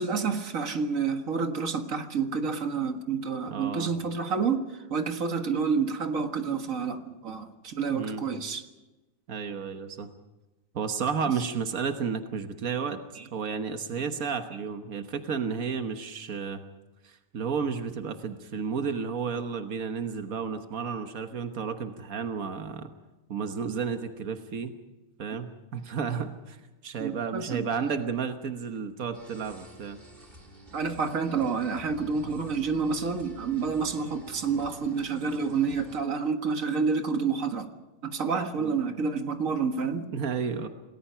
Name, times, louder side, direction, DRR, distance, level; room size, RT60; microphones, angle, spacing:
voice 1, 0.0-8.6 11.2-11.3 13.1-13.2 27.0-27.7 30.7-37.7 38.0-40.1, right 5 dB, 40° right, 6 dB, 1.4 m, -29 dB
voice 2, 3.5-3.9 7.9-8.2 9.3-10.1 10.7-13.0 13.3-16.6 17.0-22.9 23.3-24.7 25.2-26.6 26.8-30.0 38.6-38.8 40.1-40.7, right 6 dB, 80° right, 7 dB, 0.7 m, -32 dB
sound 1, 29.1-36.0, equal, 20° right, 3.2 m, -49 dB
28.0 x 19.0 x 5.7 m, 1.1 s
omnidirectional pair, 3.4 m